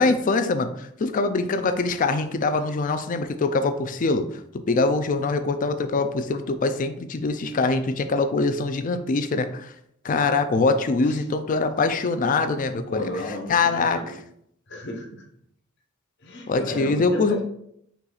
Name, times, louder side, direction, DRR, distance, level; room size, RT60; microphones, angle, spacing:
voice 1, 0.0-4.3 4.7-9.7 10.0-13.1 13.5-14.0 16.5-17.4, left 3 dB, 40° left, 9 dB, 0.4 m, -23 dB
voice 2, 12.9-14.2 14.7-15.2 16.2-17.4, left 1 dB, 60° left, 0 dB, 1.0 m, -33 dB
5.5 x 2.4 x 4.0 m, 0.71 s
head